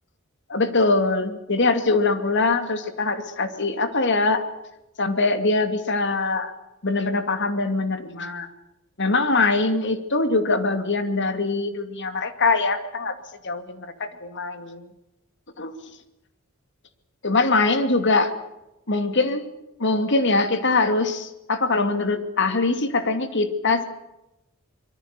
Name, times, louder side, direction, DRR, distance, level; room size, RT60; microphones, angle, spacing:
voice 1, 0.5-4.4 5.0-6.5 6.8-8.5 9.0-13.2 13.4-14.9 15.6-15.7 17.2-18.3 18.9-19.4 19.8-23.8, left 3 dB, 55° left, 9 dB, 2.6 m, -22 dB
25.5 x 23.0 x 6.8 m, 0.94 s
head